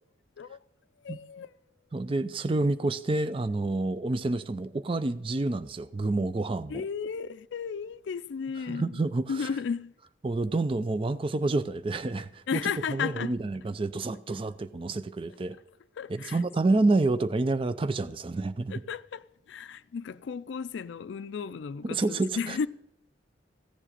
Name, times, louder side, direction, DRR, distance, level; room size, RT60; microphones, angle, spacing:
voice 1, 1.0-1.5 6.7-9.0 9.3-9.9 12.5-13.3 16.0-16.4 18.7-22.7, left 6 dB, 75° left, 0.4 m, -34 dB
voice 2, 1.9-6.8 8.7-9.5 10.2-12.6 12.9-15.6 16.1-18.8 21.8-22.7, right 2 dB, 30° right, 0.4 m, -28 dB
15.0 x 7.4 x 6.7 m
head